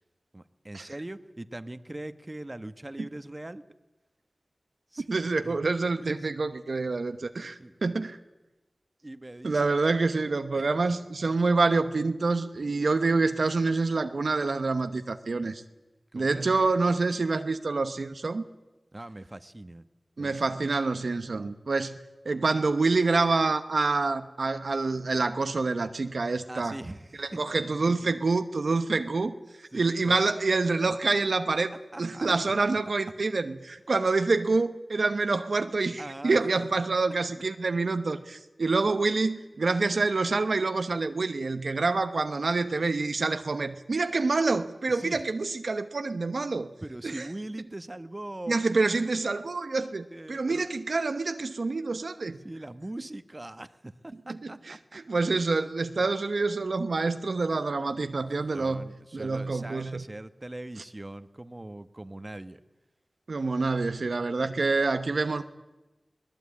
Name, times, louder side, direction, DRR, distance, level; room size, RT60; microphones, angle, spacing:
voice 1, 0.3-3.6 4.9-5.1 5.4-5.6 6.0-6.2 7.6-7.8 9.0-9.6 12.5-12.6 16.1-16.9 18.9-19.8 20.2-20.4 26.5-27.3 28.0-28.1 29.7-30.2 31.9-32.3 32.6-32.7 36.0-36.4 44.9-45.2 46.8-48.6 49.3-49.5 50.1-50.6 52.4-54.8 58.5-62.6, right 1 dB, 35° right, 1.2 m, -41 dB
voice 2, 5.1-8.2 9.4-15.6 16.1-18.4 20.2-22.0 22.2-26.8 27.2-46.7 47.0-47.3 48.5-52.4 54.3-60.0 63.3-65.4, right 3 dB, 80° right, 1.0 m, -27 dB
21.0 x 19.5 x 8.6 m
cardioid pair, 40°, 0 cm